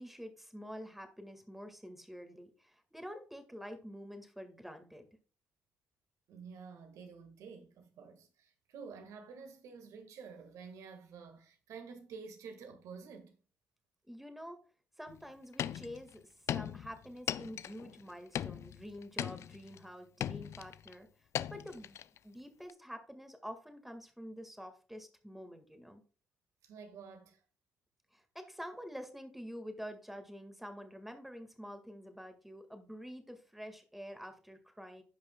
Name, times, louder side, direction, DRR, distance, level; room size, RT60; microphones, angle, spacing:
voice 1, 0.0-5.0 14.1-14.6 15.0-22.0 22.2-26.0 28.1-35.0, equal, 5° right, 1.8 m, -48 dB
voice 2, 6.3-13.4 26.6-27.4, right 5 dB, 75° right, 1.6 m, -50 dB
sound 1, 15.1-15.2 15.5-16.1 16.5-18.0 18.3-19.8 20.2-20.9 21.3-22.2 22.7-22.8, left 10 dB, 60° left, 0.3 m, -39 dB
14.5 x 5.4 x 2.3 m
supercardioid pair, 70°, 5 cm